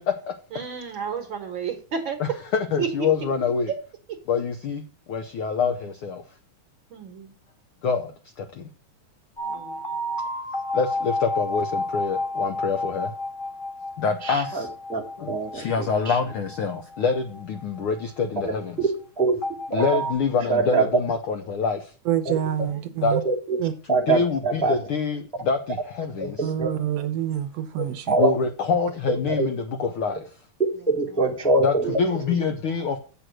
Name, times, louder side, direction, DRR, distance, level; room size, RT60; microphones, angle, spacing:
voice 1, 0.0-0.3 2.2-3.7 4.3-4.8 5.1-6.2 7.8-8.1 8.4-8.7 9.4-9.6 10.7-13.1 14.0-14.7 15.2-18.9 19.7-21.9 23.0-23.1 24.1-26.5 28.2-30.3 31.6-33.0, left 5 dB, 75° left, 1.2 m, -26 dB
voice 2, 0.5-2.2 2.8-3.1 3.7-3.8 6.9-7.3 9.5-9.9 22.7-23.0, right 6 dB, 55° right, 1.6 m, -32 dB
sound 1, 9.4-18.4 19.4-20.1, left 1 dB, 25° left, 1.4 m, -31 dB
voice 3, 14.2-15.0 15.3-16.2 18.4-18.9 19.2-19.4 19.8-19.9 20.5-20.9 23.1-23.6 23.9-24.8 26.2-26.3 26.6-26.7 28.1-28.3 29.3-29.5 30.9-32.0, right 3 dB, 5° left, 0.7 m, -24 dB
voice 4, 22.1-23.2 23.6-23.7 26.4-28.2, right 10 dB, 75° right, 1.7 m, -26 dB
7.9 x 6.4 x 6.1 m
omnidirectional pair, 3.3 m